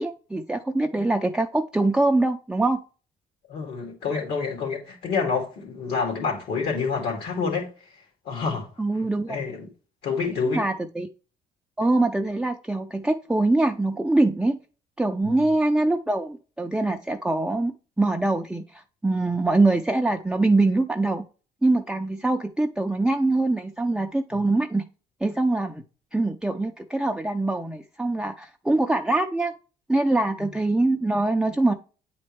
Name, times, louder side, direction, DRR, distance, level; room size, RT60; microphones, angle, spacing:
voice 1, 0.0-2.8 8.8-9.4 10.5-11.1 11.8-14.6 15.0-21.2 21.6-24.8 25.2-25.8 26.1-29.5 29.9-31.7, right 2 dB, 5° right, 0.4 m, -23 dB
voice 2, 3.5-7.7 8.2-8.7 9.3-9.7 10.0-10.6 15.2-15.3 30.4-30.5, left 5 dB, 70° left, 2.4 m, -28 dB
8.6 x 4.3 x 3.2 m
cardioid pair, 110°, 17 cm